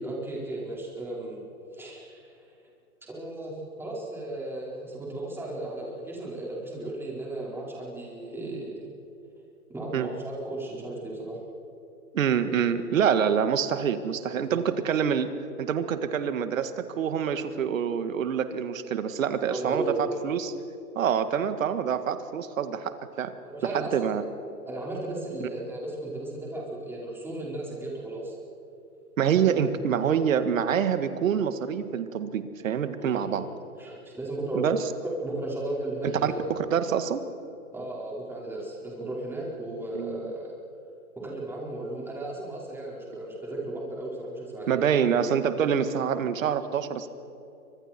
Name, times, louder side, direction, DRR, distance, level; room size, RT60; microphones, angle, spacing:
voice 1, 0.0-1.4 1.7-2.3 3.1-8.9 9.7-11.4 14.4-14.7 19.5-20.1 23.4-24.1 24.7-28.4 29.6-29.7 30.0-30.3 33.0-33.4 33.8-34.7 35.0-36.4 37.7-40.5 41.1-45.0, right 2 dB, 5° right, -4 dB, 4.8 m, -35 dB
voice 2, 12.1-20.5 21.0-23.3 23.7-24.2 29.2-33.4 34.6-34.8 36.2-37.2 39.9-40.3 44.7-47.1, right 8 dB, 60° right, 10 dB, 1.9 m, -26 dB
29.0 x 25.5 x 4.5 m, 2.8 s
hypercardioid pair, 145°, 45 cm